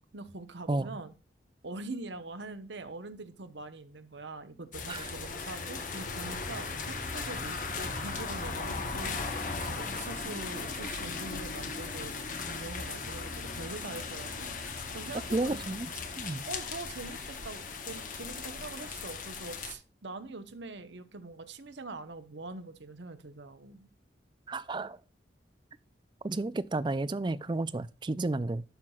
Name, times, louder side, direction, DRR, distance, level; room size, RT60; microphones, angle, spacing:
voice 1, 0.1-1.1 1.6-15.6 16.5-23.9, right 3 dB, 75° right, 1.0 m, -43 dB
sound 1, 4.7-19.7, left 4 dB, 45° left, 1.0 m, -37 dB
voice 2, 15.3-15.9 16.2-16.5 24.5-25.0 26.2-28.6, right 2 dB, 25° right, 0.4 m, -32 dB
12.0 x 5.9 x 2.4 m
head